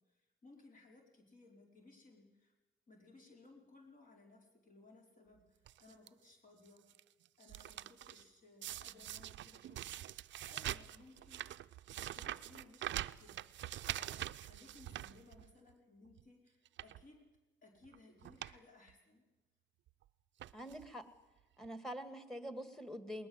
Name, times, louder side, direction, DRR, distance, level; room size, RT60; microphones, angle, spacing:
voice 1, 0.4-2.5 2.9-6.8 7.4-11.4 12.0-13.4 13.9-17.2 17.6-19.2, left 2 dB, 45° left, 0 dB, 4.9 m, -61 dB
sound 1, 5.7-6.1 6.7-7.0 7.3-8.2 8.6-15.7 16.1-16.2 16.7-17.0 17.8-18.0 18.2-18.6 18.9-19.0 19.9-20.0 20.4-20.9 21.6-21.7 21.9-22.0, right 13 dB, 70° right, 0.6 m, -44 dB
voice 2, 20.5-21.0 21.6-23.3, equal, ahead, 9 dB, 2.2 m, -45 dB
20.5 x 19.5 x 8.0 m, 1.1 s
cardioid pair, 90°, 20 cm